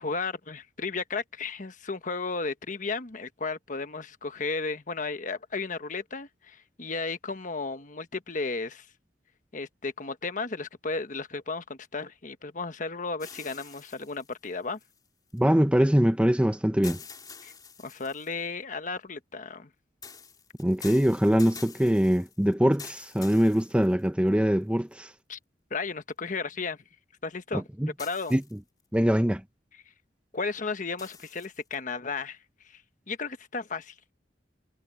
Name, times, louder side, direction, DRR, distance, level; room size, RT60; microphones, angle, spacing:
voice 1, 0.0-8.9 9.5-14.8 17.4-17.5 17.8-19.7 25.3-25.4 25.7-26.8 27.2-27.7 28.0-28.3 30.3-32.4 32.6-32.8 33.1-33.9, left 4 dB, 45° left, 1.2 m, -34 dB
sound 1, 13.2-15.4 16.8-18.5 20.0-24.3 24.9-25.0 28.0-28.8 31.0-31.8, left 5 dB, 25° left, 3.4 m, -47 dB
voice 2, 15.3-17.0 20.6-25.1 27.5-27.9 28.3-28.6 28.9-29.4, equal, 5° right, 0.8 m, -23 dB
head